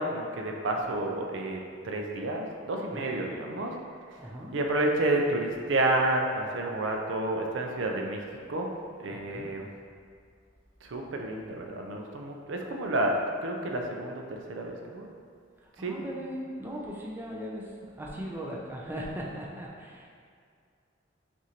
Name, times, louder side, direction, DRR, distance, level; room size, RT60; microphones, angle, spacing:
voice 1, 0.0-3.8 4.5-8.2 8.5-8.7 9.0-9.7 10.8-15.1 15.8-16.1, right 2 dB, 75° right, 1 dB, 0.5 m, -30 dB
voice 2, 2.9-3.2 4.2-4.5 9.1-9.5 15.6-20.1, equal, 10° right, -3 dB, 0.4 m, -39 dB
6.0 x 2.5 x 2.8 m, 2.1 s
head